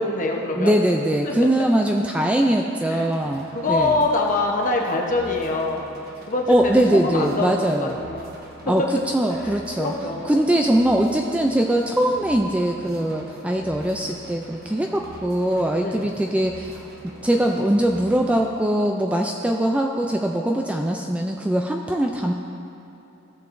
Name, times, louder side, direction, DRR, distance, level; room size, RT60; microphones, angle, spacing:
voice 1, 0.0-0.8 2.9-3.1 3.5-5.8 6.3-7.5 7.8-8.3 9.4-9.5 9.8-10.4 15.8-16.1, left 2 dB, 40° left, 0 dB, 1.0 m, -24 dB
voice 2, 0.5-4.0 6.5-8.1 8.7-8.8 9.1-9.9 10.2-16.8 17.2-22.3, right 1 dB, 5° right, 2 dB, 0.3 m, -21 dB
sound 1, 2.9-18.5, right 1 dB, 50° right, 1.1 m, -44 dB
15.5 x 6.8 x 2.6 m, 3.0 s
head